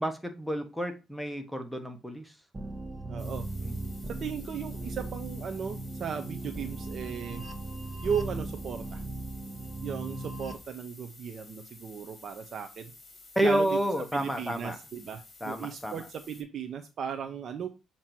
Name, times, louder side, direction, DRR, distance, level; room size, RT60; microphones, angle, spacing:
voice 1, 0.0-2.3 3.6-3.8 13.3-14.8 15.4-16.0, right 1 dB, ahead, 1.2 m, -30 dB
sound 1, 2.5-10.6, right 2 dB, 30° right, 1.4 m, -38 dB
voice 2, 3.1-3.5 4.1-7.4 8.0-9.0 9.8-12.9 13.4-13.7 14.1-17.7, right 7 dB, 60° right, 0.7 m, -36 dB
sound 2, 3.2-16.4, left 3 dB, 30° left, 3.3 m, -53 dB
7.5 x 2.9 x 4.5 m
cardioid pair, 85°, 0 cm